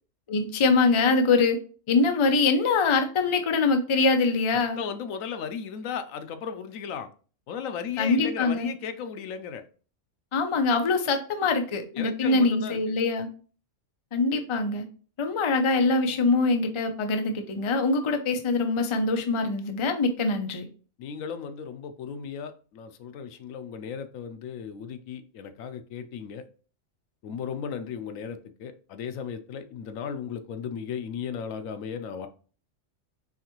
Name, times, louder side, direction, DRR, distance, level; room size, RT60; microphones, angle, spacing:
voice 1, 0.3-1.6 1.9-4.8 8.0-8.7 10.3-13.3 14.1-14.9 15.2-20.7, left 3 dB, 45° left, 0.4 m, -23 dB
voice 2, 4.5-7.1 7.5-9.7 11.9-13.0 21.0-26.4 27.2-32.3, left 7 dB, 90° left, 1.0 m, -36 dB
4.7 x 3.3 x 3.0 m
omnidirectional pair, 1.4 m